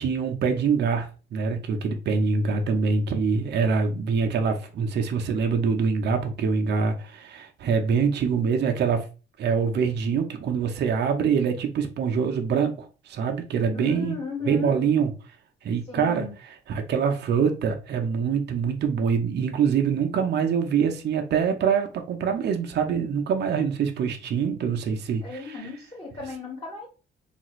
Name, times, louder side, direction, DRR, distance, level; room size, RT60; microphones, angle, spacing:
voice 1, 0.0-9.1 9.4-14.2 14.5-15.1 15.6-16.2 16.7-25.2, right 6 dB, 60° right, 0.6 m, -24 dB
voice 2, 13.7-14.8 15.8-16.3 25.2-26.9, left 4 dB, 25° left, 1.3 m, -35 dB
3.3 x 2.4 x 3.0 m
cardioid pair, 90°, 20 cm